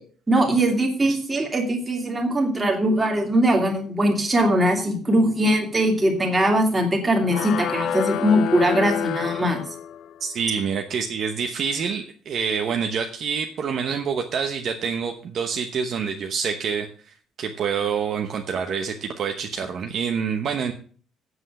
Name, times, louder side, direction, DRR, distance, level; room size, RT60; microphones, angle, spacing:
voice 1, 0.3-9.6, right 1 dB, 10° right, 1 dB, 2.3 m, -21 dB
sound 1, 7.3-10.2, left 8 dB, 55° left, 0.7 m, -28 dB
voice 2, 10.2-16.9 17.4-20.7, right 6 dB, 40° right, 4 dB, 0.9 m, -27 dB
8.0 x 7.8 x 7.6 m, 0.43 s
cardioid pair, 180°, 0 cm